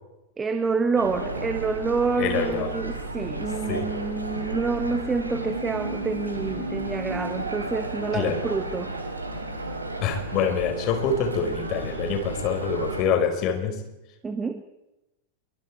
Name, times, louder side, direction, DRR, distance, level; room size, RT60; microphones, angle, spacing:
voice 1, 0.4-8.9 14.2-14.6, right 4 dB, 15° right, 9 dB, 1.5 m, -27 dB
sound 1, 1.0-13.0, right 2 dB, 80° right, 3.9 m, -33 dB
voice 2, 2.2-2.7 3.7-3.9 8.1-8.4 10.0-13.8, left 6 dB, 40° left, 6 dB, 4.5 m, -26 dB
27.0 x 24.0 x 4.6 m, 0.97 s
figure-of-eight pair, 90°, 0 cm